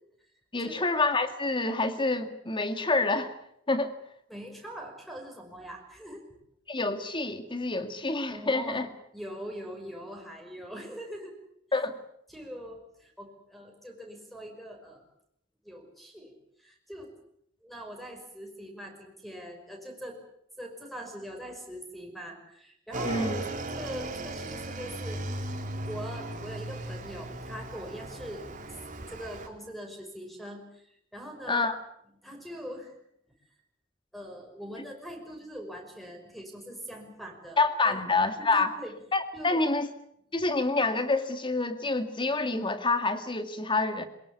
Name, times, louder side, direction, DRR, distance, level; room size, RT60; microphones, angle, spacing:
voice 1, 0.5-3.3 3.7-3.9 6.7-8.9 11.7-12.0 23.0-23.4 31.5-31.8 37.6-38.7 39.1-39.9 40.3-44.1, left 3 dB, 25° left, 9 dB, 2.1 m, -27 dB
voice 2, 4.3-6.2 8.3-8.8 9.1-11.3 12.3-15.0 15.6-17.1 17.6-20.2 20.6-25.2 25.7-28.5 29.1-31.6 32.2-32.9 34.1-37.6 37.8-38.0 38.4-38.9 39.3-39.6, equal, ahead, 4 dB, 5.7 m, -42 dB
Motorcycle / Engine, 22.9-29.5, right 2 dB, 40° right, 3.4 m, -37 dB
23.0 x 21.5 x 8.3 m, 0.73 s
head